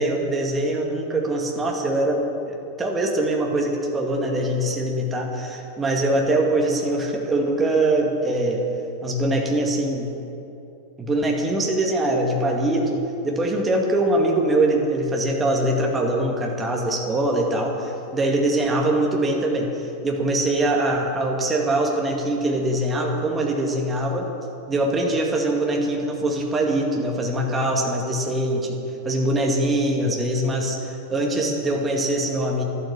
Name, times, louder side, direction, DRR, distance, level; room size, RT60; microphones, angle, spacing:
voice 1, 0.0-2.2 2.5-8.6 9.0-10.1 11.0-24.3 24.7-28.8 29.0-32.6, right 1 dB, 15° right, 0 dB, 2.3 m, -23 dB
12.5 x 12.0 x 7.3 m, 2.8 s
figure-of-eight pair, 90°, 0 cm